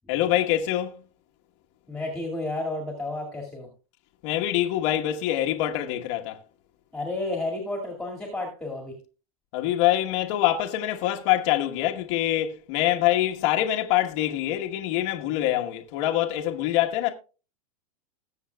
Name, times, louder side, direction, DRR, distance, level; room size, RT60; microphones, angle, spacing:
voice 1, 0.1-1.0 4.2-6.4 9.5-17.1, left 13 dB, 55° left, 1.3 m, -25 dB
voice 2, 1.9-3.7 6.9-9.0, left 2 dB, 5° left, 2.2 m, -31 dB
20.0 x 7.3 x 2.3 m
supercardioid pair, 135°, 19 cm